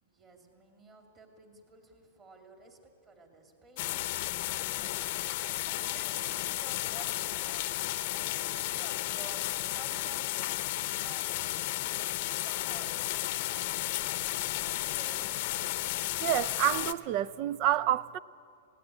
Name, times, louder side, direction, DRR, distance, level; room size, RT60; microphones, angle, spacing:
voice 1, 0.0-7.7 8.1-12.1 12.4-15.6, right 3 dB, 20° right, 2.6 m, -54 dB
sound 1, 3.8-16.9, left 16 dB, 45° left, 0.8 m, -33 dB
voice 2, 16.2-18.2, right 12 dB, 35° right, 0.5 m, -28 dB
19.5 x 17.0 x 9.9 m
hypercardioid pair, 155°, 0 cm